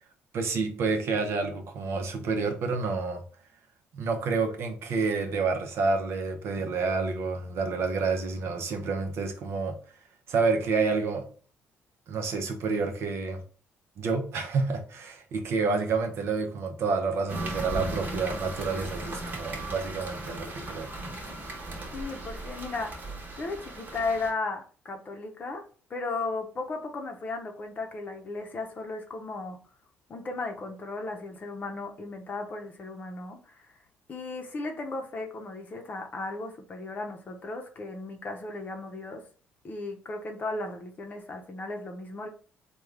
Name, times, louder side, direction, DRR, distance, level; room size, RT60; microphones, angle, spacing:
voice 1, 0.3-3.2 3.9-9.7 10.3-11.3 12.1-13.4 14.0-20.9, right 4 dB, 65° right, 0.6 m, -29 dB
sound 1, 17.3-24.3, right 2 dB, 40° right, 1.1 m, -37 dB
voice 2, 21.9-23.0 23.4-25.6 25.9-29.6 30.1-33.7 34.1-39.2 39.6-42.3, left 3 dB, 40° left, 0.7 m, -35 dB
3.5 x 2.3 x 3.2 m
cardioid pair, 100°, 5 cm